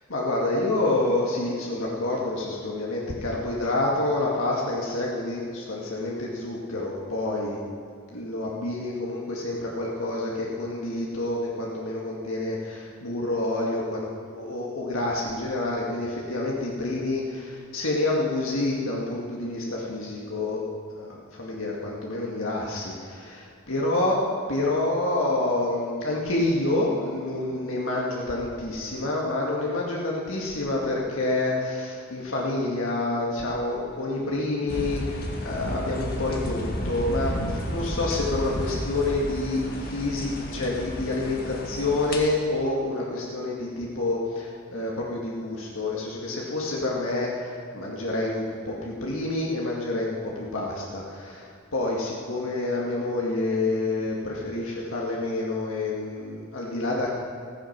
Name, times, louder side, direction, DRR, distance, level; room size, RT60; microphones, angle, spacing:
voice 1, 0.1-7.6 8.1-20.6 21.0-24.2 24.5-57.1, left 2 dB, 85° left, -3 dB, 2.2 m, -28 dB
sound 1, 34.7-42.2, left 1 dB, 50° left, 2.0 m, -32 dB
15.5 x 15.0 x 6.0 m, 2.1 s
head